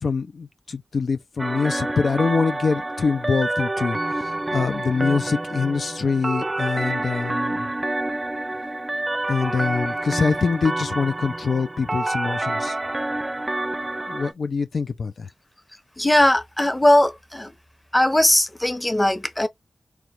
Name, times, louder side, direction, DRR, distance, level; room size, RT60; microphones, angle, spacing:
voice 1, 0.0-7.7 9.3-12.8 14.1-15.3, left 5 dB, 85° left, 0.5 m, -24 dB
sound 1, 1.4-14.3, right 2 dB, 30° right, 0.4 m, -28 dB
voice 2, 16.0-17.5 17.9-19.5, left 1 dB, 15° left, 0.8 m, -19 dB
4.5 x 2.5 x 3.0 m
wide cardioid pair, 60°, 0 cm